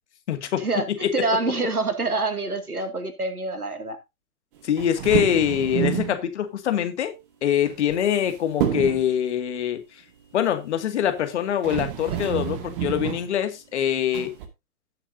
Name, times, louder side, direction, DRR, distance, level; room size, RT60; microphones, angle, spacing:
voice 1, 0.3-1.1 4.6-7.1 7.4-9.8 10.3-14.3, left 9 dB, 50° left, 2.2 m, -24 dB
voice 2, 1.1-4.0, right 3 dB, 85° right, 2.4 m, -26 dB
sound 1, 4.8-6.2 7.7-8.3 8.6-9.1 11.1-11.2 11.6-13.3 14.1-14.5, right 11 dB, 40° right, 2.2 m, -28 dB
17.0 x 6.9 x 2.7 m
figure-of-eight pair, 120°, 44 cm